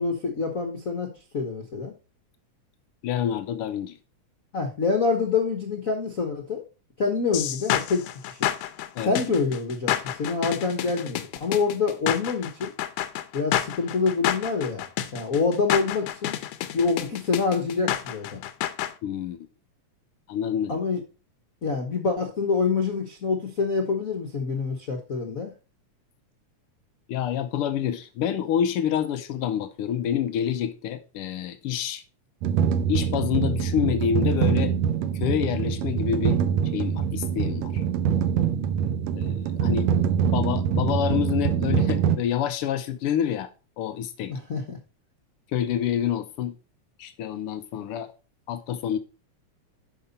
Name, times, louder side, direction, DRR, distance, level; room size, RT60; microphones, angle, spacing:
voice 1, 0.0-1.9 4.5-6.6 7.0-8.5 9.0-12.7 13.3-14.9 15.1-16.3 16.7-18.4 20.7-21.0 21.6-25.5 44.3-44.8, left 4 dB, 60° left, 0.9 m, -26 dB
voice 2, 3.0-4.0 8.9-9.1 19.0-19.5 20.3-20.8 27.1-32.0 32.9-34.7 35.1-36.4 36.7-37.8 39.2-39.9 40.3-44.3 45.5-46.6 47.0-48.1 48.5-49.0, left 9 dB, 90° left, 1.2 m, -27 dB
sound 1, 7.3-18.9, left 12 dB, 75° left, 1.6 m, -29 dB
sound 2, 32.4-42.2, right 8 dB, 75° right, 1.9 m, -24 dB
11.0 x 5.2 x 4.1 m
omnidirectional pair, 3.4 m